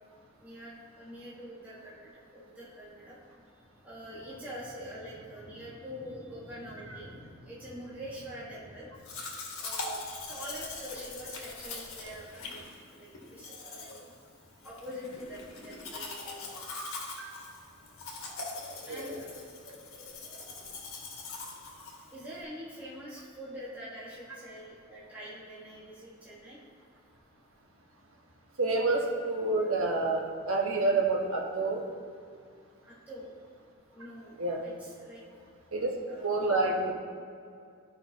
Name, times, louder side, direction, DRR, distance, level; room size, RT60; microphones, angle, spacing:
voice 1, 0.4-3.4 3.8-9.1 9.6-10.0 10.3-14.1 14.6-16.7 18.9-19.3 22.1-26.6 32.8-33.3 33.9-35.2 36.1-36.8, equal, 10° right, -9 dB, 1.5 m, -45 dB
Domestic sounds home sounds, 9.0-22.4, left 3 dB, 85° left, 1.6 m, -42 dB
voice 2, 18.9-19.2 28.6-31.9 34.4-34.6 35.7-35.9 36.2-36.9, right 3 dB, 85° right, -1 dB, 1.2 m, -28 dB
13.0 x 5.4 x 2.9 m, 2.3 s
head